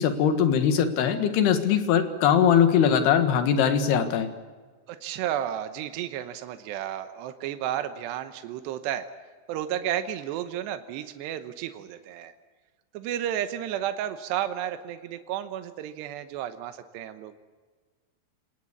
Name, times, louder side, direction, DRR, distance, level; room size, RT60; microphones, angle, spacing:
voice 1, 0.0-4.3, left 8 dB, 75° left, 8 dB, 3.7 m, -21 dB
voice 2, 4.9-9.1 9.5-12.3 12.9-17.3, right 11 dB, 85° right, 9 dB, 3.2 m, -32 dB
27.5 x 18.5 x 8.5 m, 1.5 s
omnidirectional pair, 4.8 m